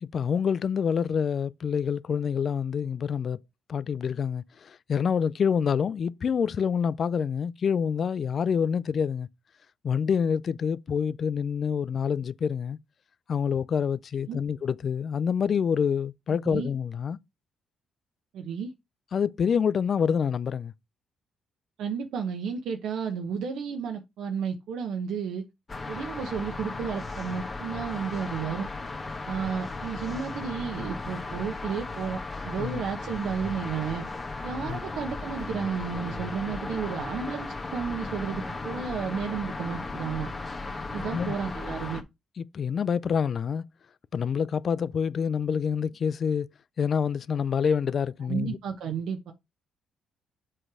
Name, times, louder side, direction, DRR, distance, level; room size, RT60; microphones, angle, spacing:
voice 1, 0.0-3.4 3.7-9.3 9.8-12.8 13.3-17.2 19.1-20.7 32.6-32.8 34.6-34.8 41.0-41.3 42.4-43.6 44.1-46.5 46.8-48.6, left 7 dB, 50° left, 0.4 m, -27 dB
voice 2, 18.3-18.7 21.8-25.5 25.9-28.7 29.3-34.0 34.4-40.3 40.9-42.0 48.3-49.3, right 6 dB, 80° right, 1.0 m, -32 dB
sound 1, 25.7-42.0, left 3 dB, 30° left, 1.4 m, -36 dB
7.7 x 3.2 x 6.1 m
cardioid pair, 90°, 0 cm